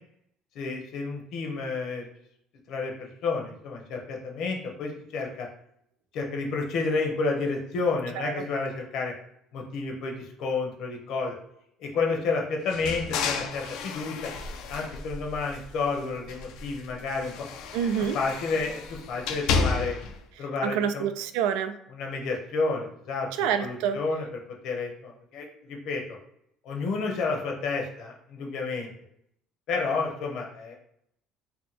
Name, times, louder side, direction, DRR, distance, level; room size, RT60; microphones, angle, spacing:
voice 1, 0.5-2.0 2.7-5.5 6.1-9.1 9.5-11.4 11.8-14.3 14.7-17.3 18.1-19.9 20.4-21.0 22.0-23.3 23.6-24.2 24.6-26.2 26.6-28.9 29.7-30.8, left 4 dB, 55° left, 1 dB, 0.8 m, -30 dB
sound 1, 12.7-15.9 16.2-20.2, left 5 dB, 75° left, 0.4 m, -32 dB
voice 2, 17.7-18.2 20.4-21.7 23.3-24.0, right 8 dB, 90° right, 9 dB, 0.3 m, -27 dB
2.8 x 2.2 x 4.1 m, 0.73 s
cardioid pair, 150°, 0 cm